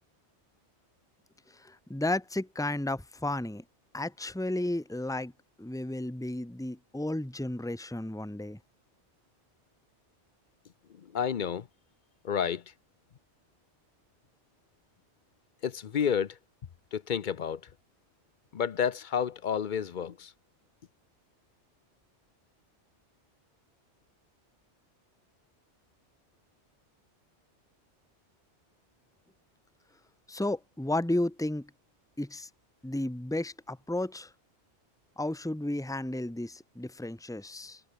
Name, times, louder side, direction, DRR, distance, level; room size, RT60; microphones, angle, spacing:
voice 1, 1.5-3.6 3.9-5.3 5.6-8.6 30.3-31.7 32.2-32.5 32.8-34.3 35.2-37.8, left 1 dB, 5° left, 1.7 m, -33 dB
voice 2, 11.0-11.7 12.2-12.6 15.6-16.4 16.9-17.6 18.5-20.3, left 8 dB, 50° left, 0.7 m, -30 dB
omnidirectional pair, 1.2 m